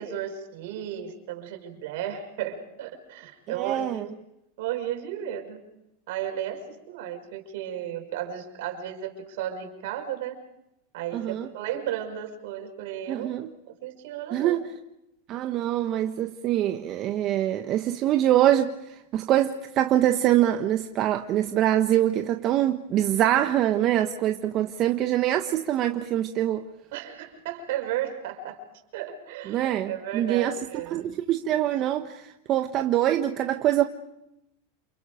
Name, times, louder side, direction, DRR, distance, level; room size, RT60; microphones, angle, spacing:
voice 1, 0.0-4.1 4.6-5.6 6.1-10.3 10.9-13.3 13.7-14.6 26.9-28.6 28.9-31.0, right 10 dB, 65° right, 6.0 m, -34 dB
voice 2, 3.6-4.0 11.1-11.5 13.1-13.5 14.3-14.7 15.3-26.6 29.5-30.6 30.9-33.8, right 12 dB, 45° right, 1.4 m, -24 dB
29.0 x 29.0 x 5.2 m
hypercardioid pair, 100°, 0 cm